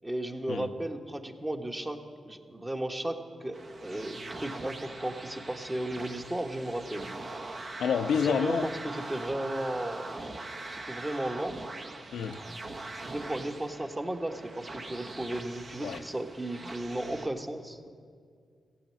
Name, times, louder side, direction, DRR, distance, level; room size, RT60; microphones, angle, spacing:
voice 1, 0.0-7.2 8.2-10.2 10.7-11.6 12.9-17.9, right 1 dB, 20° right, 1.3 m, -35 dB
sound 1, 3.5-17.3, right 2 dB, 55° right, 1.2 m, -42 dB
voice 2, 7.8-8.7 12.1-12.4 15.8-16.0, left 7 dB, 80° left, 0.5 m, -28 dB
15.5 x 8.5 x 7.6 m
supercardioid pair, 50°, 0 cm